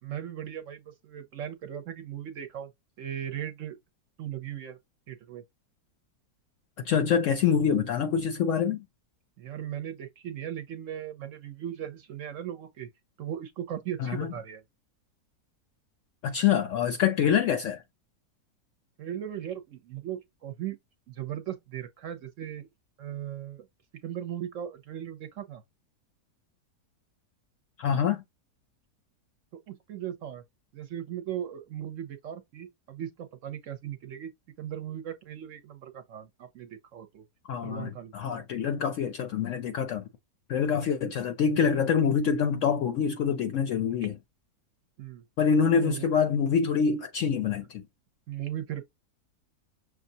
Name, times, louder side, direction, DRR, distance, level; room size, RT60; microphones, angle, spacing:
voice 1, 0.0-2.7 3.0-3.8 4.2-4.8 5.1-5.4 9.4-12.9 13.2-14.6 19.0-20.8 21.1-22.7 23.0-23.7 24.0-25.6 29.7-30.4 30.7-34.3 34.6-37.2 37.6-38.4 41.0-41.1 45.0-45.2 45.8-46.1 48.3-48.8, right 10 dB, 60° right, 0.9 m, -38 dB
voice 2, 6.8-8.8 14.0-14.3 16.2-17.8 27.8-28.2 37.5-40.0 40.5-44.1 45.4-47.8, left 7 dB, 70° left, 0.7 m, -25 dB
6.3 x 2.3 x 2.7 m
omnidirectional pair, 1.7 m